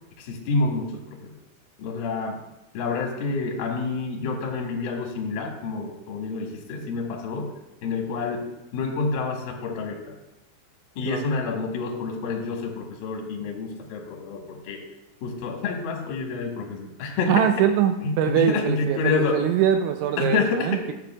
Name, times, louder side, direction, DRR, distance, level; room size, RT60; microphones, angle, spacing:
voice 1, 0.2-1.3 1.8-2.4 2.7-7.5 7.8-10.2 11.0-14.8 15.2-17.4 18.0-19.5 20.2-20.8, left 4 dB, 65° left, 0 dB, 2.6 m, -28 dB
voice 2, 17.3-20.9, right 9 dB, 85° right, 7 dB, 2.7 m, -23 dB
13.5 x 8.1 x 2.3 m, 0.92 s
omnidirectional pair, 5.5 m